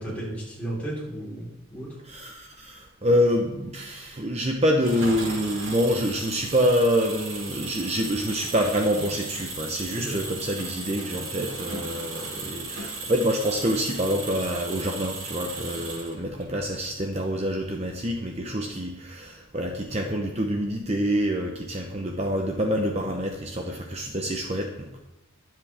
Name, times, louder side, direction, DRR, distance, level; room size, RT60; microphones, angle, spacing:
voice 1, 0.0-2.0 10.0-10.2, right 1 dB, 5° left, -6 dB, 4.5 m, -34 dB
voice 2, 2.0-25.0, equal, 30° right, 2 dB, 1.0 m, -26 dB
Engine, 4.8-16.4, right 3 dB, 85° right, 4.1 m, -36 dB
21.5 x 7.6 x 3.6 m, 0.99 s
head